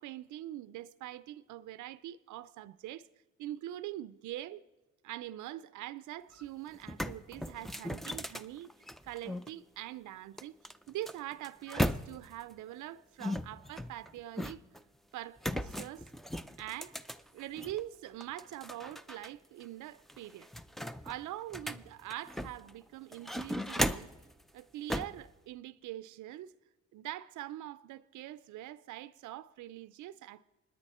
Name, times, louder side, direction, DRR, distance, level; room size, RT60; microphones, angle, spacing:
voice 1, 0.0-3.1 3.4-4.6 5.0-8.7 9.0-14.6 15.1-16.1 16.6-17.0 17.3-20.5 21.0-24.1 24.5-26.6 26.9-30.5, right 14 dB, 80° right, 0.5 m, -44 dB
sound 1, 6.3-6.4 6.7-9.5 10.4-12.4 13.2-14.8 15.4-17.8 18.2-19.3 19.6-19.7 20.1-22.7 23.1-24.2 24.9-25.2, equal, ahead, 0.5 m, -37 dB
25.5 x 9.8 x 4.2 m
cardioid pair, 90°, 30 cm